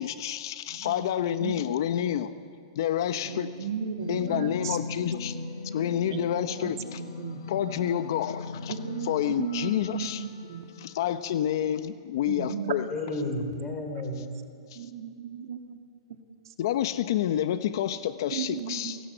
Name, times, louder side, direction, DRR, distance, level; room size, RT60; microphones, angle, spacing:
voice 1, 0.0-2.4 2.8-3.5 4.1-5.3 5.7-7.0 7.5-8.7 9.0-10.2 10.8-12.8 14.7-14.9 16.6-19.0, left 10 dB, 55° left, 11 dB, 0.9 m, -29 dB
voice 2, 0.7-1.1 1.4-1.6 3.3-4.8 5.3-5.4 6.1-6.7 7.0-7.4 8.7-10.6 12.3-12.7 14.7-15.8 16.1-16.2 16.5-16.6 18.3-19.0, right 7 dB, 60° right, 5 dB, 2.1 m, -35 dB
voice 3, 3.2-3.7 6.8-6.9 12.9-14.3, left 1 dB, 15° left, 3 dB, 4.4 m, -33 dB
sound 1, 4.0-11.2, left 4 dB, 70° left, 3.7 m, -39 dB
26.5 x 17.5 x 7.9 m, 2.3 s
hypercardioid pair, 150°, 2 cm